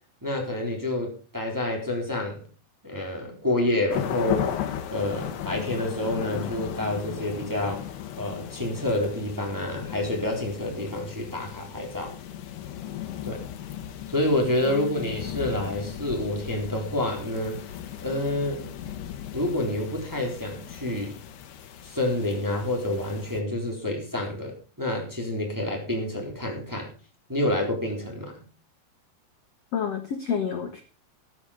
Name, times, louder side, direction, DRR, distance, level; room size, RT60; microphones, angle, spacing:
voice 1, 0.2-2.4 2.8-4.5 4.9-7.9 8.2-12.1 13.2-13.4 14.1-17.6 18.0-18.6 19.3-21.2 21.8-26.9 27.3-28.3, left 1 dB, 5° right, 0 dB, 2.9 m, -28 dB
sound 1, 3.9-23.4, left 10 dB, 70° left, 3.3 m, -36 dB
voice 2, 14.6-15.1 29.7-30.8, left 7 dB, 90° left, 6 dB, 1.3 m, -30 dB
13.0 x 11.0 x 5.0 m, 0.35 s
omnidirectional pair, 5.1 m